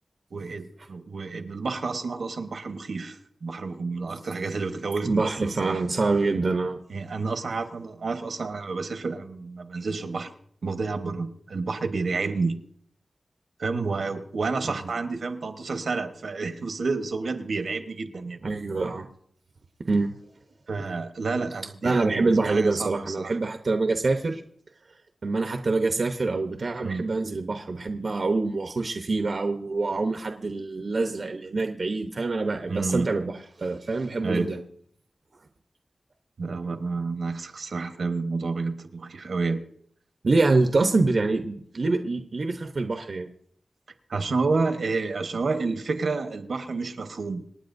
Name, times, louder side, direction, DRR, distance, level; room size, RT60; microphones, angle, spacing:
voice 1, 0.3-5.8 6.9-10.3 10.6-12.6 13.6-18.4 20.7-23.4 26.8-27.0 32.7-33.1 34.2-34.5 36.4-39.6 44.1-47.4, right 4 dB, 80° right, 7 dB, 1.2 m, -30 dB
voice 2, 5.0-6.8 14.7-14.8 18.4-19.1 19.9-20.1 20.8-20.9 21.8-24.4 25.2-34.6 40.2-43.3, right 3 dB, 55° right, 5 dB, 0.8 m, -25 dB
27.0 x 9.6 x 2.6 m, 0.65 s
wide cardioid pair, 105°, 0 cm